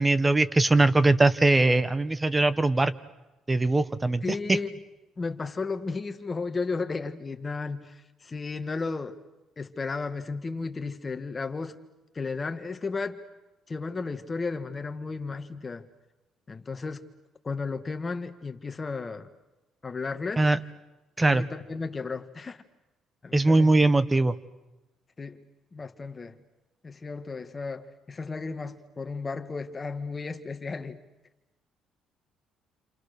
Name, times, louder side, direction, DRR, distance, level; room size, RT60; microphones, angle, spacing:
voice 1, 0.0-2.9 3.5-4.2 20.4-20.6 21.2-21.4 23.3-24.4, right 2 dB, 15° right, 14 dB, 1.0 m, -21 dB
voice 2, 4.2-4.7 5.2-9.2 9.6-11.8 12.1-13.2 13.7-15.9 16.5-17.0 17.4-19.3 19.8-20.5 21.3-22.6 23.2-23.7 25.2-25.4 25.7-26.4 26.8-31.0, left 4 dB, 25° left, 8 dB, 1.6 m, -34 dB
29.0 x 27.5 x 6.7 m, 1.0 s
cardioid pair, 140°, 0 cm